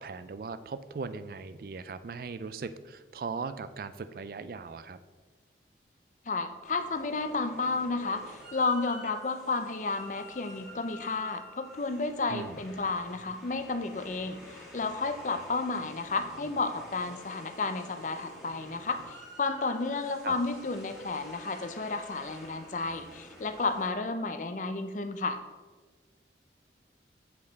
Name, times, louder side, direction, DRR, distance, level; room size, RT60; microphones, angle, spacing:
voice 1, 0.0-5.0 12.3-12.6 20.2-20.4, right 4 dB, 50° right, 13 dB, 0.3 m, -39 dB
voice 2, 6.3-25.4, left 3 dB, 45° left, 9 dB, 0.5 m, -32 dB
sound 1, 6.6-23.9, left 1 dB, ahead, 1.6 m, -50 dB
7.9 x 5.2 x 4.0 m, 1.3 s
head